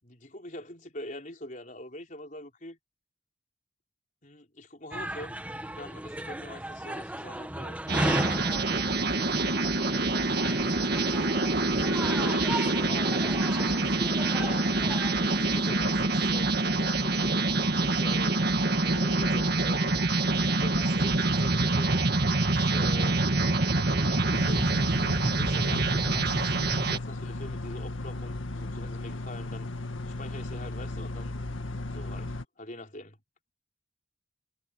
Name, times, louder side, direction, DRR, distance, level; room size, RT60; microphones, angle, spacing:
voice 1, 0.0-2.8 4.2-5.4 5.8-8.3 10.1-13.9 14.4-14.8 15.2-18.6 18.8-20.0 20.3-22.0 22.5-23.2 23.7-26.6 26.9-29.7 30.1-31.4 31.9-33.2, left 1 dB, 40° left, 4.5 m, -44 dB
sound 1, 4.9-16.1, right 1 dB, 5° right, 1.2 m, -36 dB
sound 2, 7.9-27.0, right 2 dB, 50° right, 2.0 m, -26 dB
sound 3, 24.3-32.4, left 2 dB, 75° left, 2.0 m, -36 dB
head